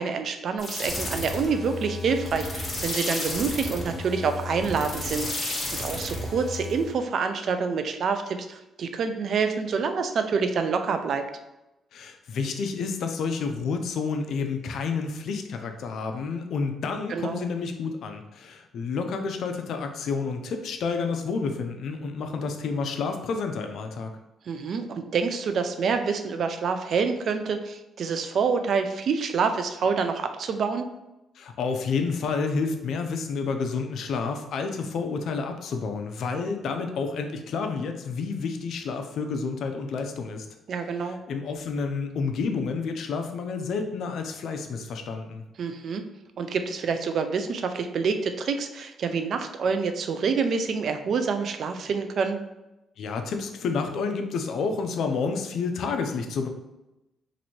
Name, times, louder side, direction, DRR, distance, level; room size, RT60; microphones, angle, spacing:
voice 1, 0.0-11.3 17.1-17.4 24.5-30.9 40.7-41.2 45.6-46.0 46.4-52.4, right 5 dB, 60° right, 7 dB, 0.4 m, -27 dB
sound 1, 0.6-6.9, left 2 dB, 30° left, 1.3 m, -32 dB
voice 2, 11.9-24.1 31.4-40.5 41.0-45.4 53.0-56.5, left 4 dB, 70° left, 5 dB, 0.5 m, -30 dB
3.0 x 2.6 x 4.2 m, 0.94 s
cardioid pair, 90°, 0 cm